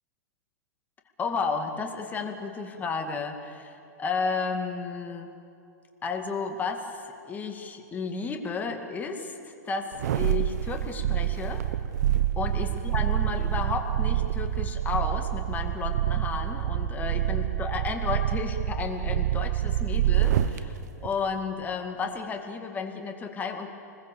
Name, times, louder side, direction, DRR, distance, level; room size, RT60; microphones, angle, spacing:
voice 1, 1.2-5.3 6.0-7.0 7.3-9.4 9.7-11.7 12.4-23.7, left 5 dB, 15° left, 4 dB, 2.2 m, -32 dB
sound 1, 9.9-20.6 21.0-21.1, right 12 dB, 65° right, 1.0 m, -27 dB
26.0 x 21.0 x 7.3 m, 2.7 s
hypercardioid pair, 125°, 9 cm